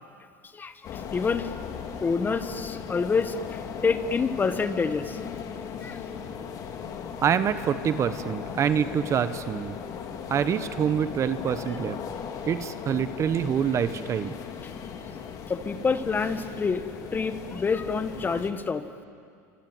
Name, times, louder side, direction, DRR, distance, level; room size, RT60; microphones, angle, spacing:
voice 1, 0.5-1.5 2.0-5.2 5.8-6.0 15.5-16.8 17.1-18.8, left 5 dB, 20° left, 11 dB, 1.6 m, -27 dB
sound 1, 0.8-18.5, left 7 dB, 45° left, 2.9 m, -37 dB
voice 2, 7.2-9.8 10.3-12.0 12.5-14.3, right 8 dB, 35° right, 12 dB, 1.3 m, -26 dB
28.5 x 25.5 x 8.1 m, 2.2 s
supercardioid pair, 105°, 9 cm